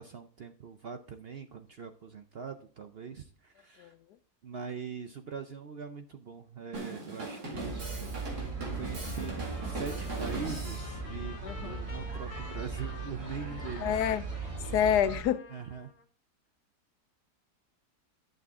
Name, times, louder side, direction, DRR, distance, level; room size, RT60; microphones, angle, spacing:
voice 1, 0.0-3.9 4.4-7.9 8.6-14.0 15.5-15.9, right 6 dB, 60° right, 0.6 m, -42 dB
Drum kit, 6.7-10.9, right 2 dB, 80° right, 2.8 m, -40 dB
sound 1, 7.5-15.2, right 4 dB, 20° right, 2.5 m, -38 dB
Trumpet, 9.0-16.0, left 3 dB, 55° left, 1.7 m, -51 dB
voice 2, 11.4-11.9 13.8-14.2 14.7-15.4, left 9 dB, 90° left, 1.2 m, -27 dB
10.5 x 6.7 x 3.6 m
omnidirectional pair, 1.7 m